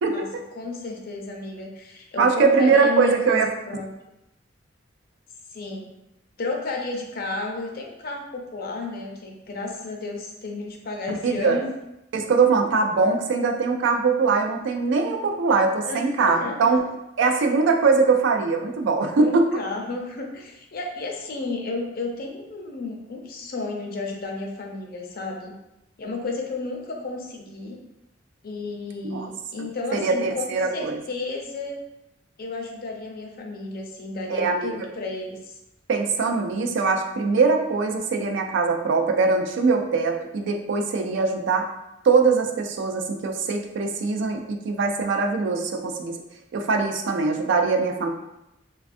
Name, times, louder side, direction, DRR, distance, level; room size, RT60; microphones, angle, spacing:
voice 1, 0.0-0.4 2.2-3.5 11.2-11.6 12.1-16.8 17.2-19.6 29.0-29.3 29.9-31.0 34.3-34.9 35.9-41.7 42.0-46.2 46.5-48.1, right 4 dB, 65° right, 4 dB, 0.3 m, -22 dB
voice 2, 0.5-3.4 3.7-3.9 5.5-5.9 6.4-11.7 13.0-13.1 15.8-16.9 19.2-25.5 26.0-27.8 28.4-30.4 30.7-31.8 32.4-35.5, left 3 dB, 50° left, 1 dB, 0.5 m, -32 dB
3.3 x 2.3 x 2.5 m, 0.89 s
head